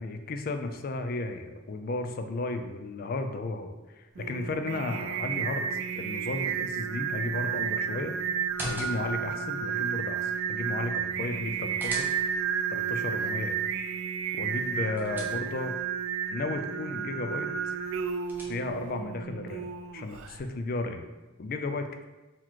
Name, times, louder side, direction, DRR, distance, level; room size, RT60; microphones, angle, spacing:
voice 1, 0.0-8.2 8.6-12.1 12.7-13.6 14.3-15.8 16.3-17.5 18.5-21.1 21.4-22.0, left 2 dB, 45° left, 7 dB, 0.4 m, -34 dB
Singing, 4.2-20.4, right 7 dB, 85° right, 0.3 m, -32 dB
sound 1, 8.4-9.3 11.3-12.6 14.5-15.8 17.8-18.9, equal, 10° right, 0.7 m, -41 dB
4.0 x 2.9 x 4.5 m, 1.1 s
head